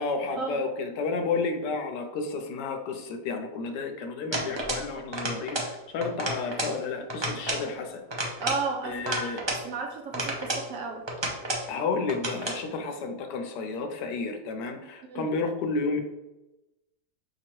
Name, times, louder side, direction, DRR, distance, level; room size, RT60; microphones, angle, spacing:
voice 1, 0.0-8.0 8.8-9.4 11.7-16.0, left 4 dB, 90° left, 6 dB, 1.3 m, -31 dB
sound 1, 4.3-4.9 5.1-5.7 6.0-6.8 7.1-7.7 8.1-9.6 10.1-10.7 11.1-11.7 12.1-12.6, right 1 dB, 40° right, 0.3 m, -31 dB
voice 2, 8.4-11.0 15.0-15.3, right 4 dB, 65° right, 2 dB, 0.9 m, -33 dB
5.8 x 2.9 x 3.0 m, 1.0 s
omnidirectional pair, 1.7 m